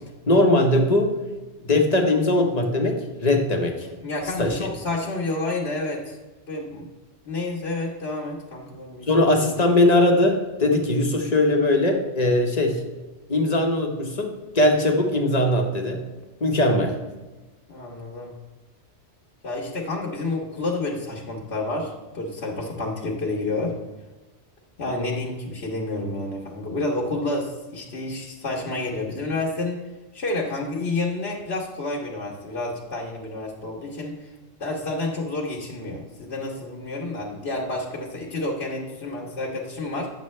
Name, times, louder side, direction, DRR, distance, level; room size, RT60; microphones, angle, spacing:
voice 1, 0.3-1.1 1.6-3.9 4.4-4.7 9.0-12.8 13.3-16.0 16.4-17.0, left 1 dB, 35° left, 2 dB, 1.1 m, -20 dB
voice 2, 4.0-6.2 6.5-6.8 7.2-9.1 17.7-18.3 19.4-23.7 24.8-29.8 30.1-34.3 34.6-40.1, left 2 dB, 60° left, -3 dB, 1.4 m, -29 dB
9.5 x 7.4 x 3.2 m, 1.2 s
omnidirectional pair, 1.2 m